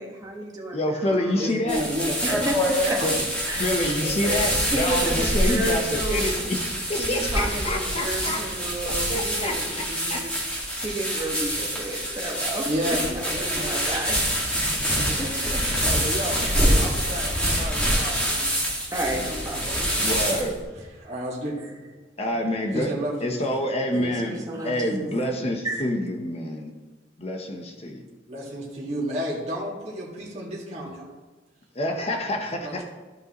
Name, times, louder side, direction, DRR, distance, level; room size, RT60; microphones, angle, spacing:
voice 1, 0.0-1.5 2.2-3.0 3.5-3.8 4.7-6.5 7.0-10.3 10.8-13.0 13.2-14.1 14.5-14.8 15.2-15.9 16.4-16.7 18.9-19.9 23.9-25.1 25.6-25.9, right 1 dB, 20° right, -2 dB, 1.5 m, -32 dB
voice 2, 0.7-1.8 3.0-3.2 3.6-8.4 8.8-9.8 10.1-10.2 20.0-20.6 22.2-22.9 23.2-24.4 24.6-26.7 27.2-28.0 31.7-32.8, left 1 dB, 35° left, 3 dB, 0.9 m, -27 dB
voice 3, 1.4-2.2 2.8-3.2 5.0-5.1 12.6-14.2 14.8-16.4 16.8-18.5 19.5-19.6 20.7-21.9 22.7-23.5 28.3-31.1 32.6-32.7, equal, 40° right, -5 dB, 1.9 m, -32 dB
sound 1, 1.7-20.6, equal, 5° left, 1.9 m, -26 dB
13.5 x 5.4 x 3.0 m, 1.2 s
head